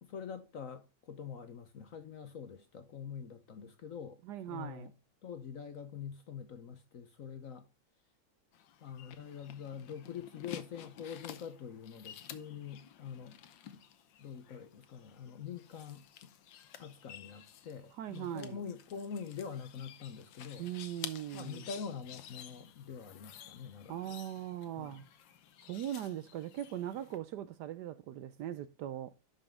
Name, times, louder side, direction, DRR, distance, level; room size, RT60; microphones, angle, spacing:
voice 1, 0.0-4.2 4.5-4.9 5.2-7.7 8.8-13.3 13.7-13.8 14.2-16.3 16.8-20.7 21.3-24.1 24.8-25.0, left 7 dB, 55° left, 1.0 m, -45 dB
voice 2, 4.2-4.9 18.0-18.6 20.6-21.7 23.9-25.1 25.7-29.1, right 11 dB, 70° right, 1.0 m, -40 dB
sound 1, 8.5-27.2, left 10 dB, 75° left, 1.6 m, -52 dB
11.5 x 5.4 x 3.5 m
omnidirectional pair, 2.1 m